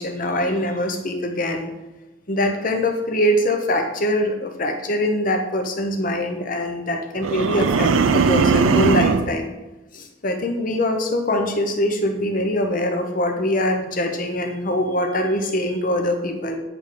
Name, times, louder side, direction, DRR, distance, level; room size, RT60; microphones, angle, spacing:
voice 1, 0.0-1.7 2.3-9.5 9.9-16.6, left 1 dB, 40° left, 5 dB, 0.7 m, -23 dB
sound 1, 7.2-9.3, right 4 dB, 85° right, 0.4 m, -18 dB
8.8 x 3.4 x 4.9 m, 1.1 s
head